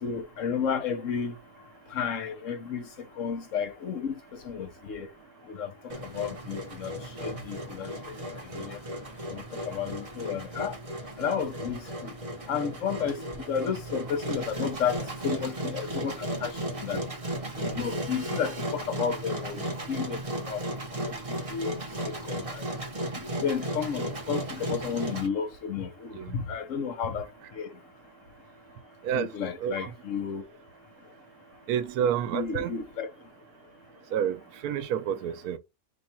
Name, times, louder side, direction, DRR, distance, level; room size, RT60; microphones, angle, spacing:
voice 1, 0.0-1.3 1.9-2.9 3.2-5.1 5.5-5.7 6.0-8.1 8.5-8.8 9.3-10.8 11.2-12.1 12.5-13.2 13.5-17.0 17.6-20.2 20.5-20.6 21.1-21.8 22.1-22.7 23.4-27.7 29.1-30.4 32.3-33.1, left 7 dB, 65° left, 1.1 m, -32 dB
Engine, 5.9-25.3, right 1 dB, 25° right, 0.9 m, -35 dB
voice 2, 29.6-29.9 31.7-32.7 34.1-35.6, right 9 dB, 90° right, 1.2 m, -29 dB
5.2 x 2.3 x 4.3 m
omnidirectional pair, 1.5 m